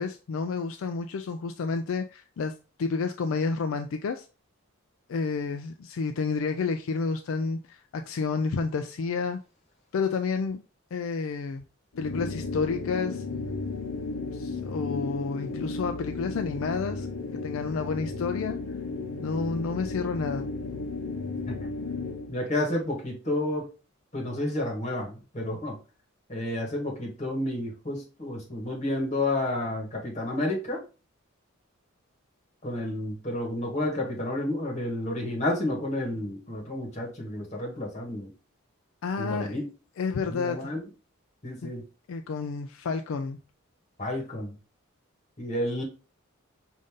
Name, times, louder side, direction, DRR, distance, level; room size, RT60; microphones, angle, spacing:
voice 1, 0.0-4.3 5.1-9.4 9.9-10.6 10.9-11.6 12.0-13.2 14.3-17.1 17.4-18.6 19.2-20.5 39.0-39.6 40.0-40.7 41.6-41.7 42.1-43.4, left 4 dB, 65° left, 0.3 m, -30 dB
sound 1, 11.9-22.3, left 3 dB, 90° left, 0.7 m, -34 dB
voice 2, 22.3-23.7 24.1-25.8 26.3-30.8 32.6-38.3 39.2-39.7 40.2-40.8 41.4-41.8 44.0-44.6 45.4-45.8, left 1 dB, 30° left, 1.4 m, -30 dB
5.1 x 2.6 x 3.6 m
head